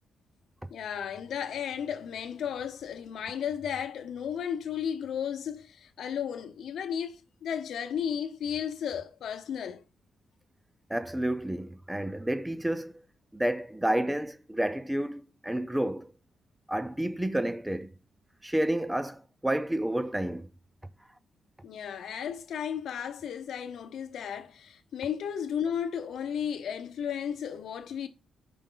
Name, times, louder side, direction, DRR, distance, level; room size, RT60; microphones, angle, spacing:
voice 1, 0.7-9.8 21.6-28.1, left 8 dB, 70° left, 0.8 m, -34 dB
voice 2, 10.9-13.0 13.3-16.1 16.7-17.9 18.4-20.5, right 1 dB, 5° right, 0.4 m, -30 dB
5.1 x 5.0 x 3.8 m
cardioid pair, 145°, 0 cm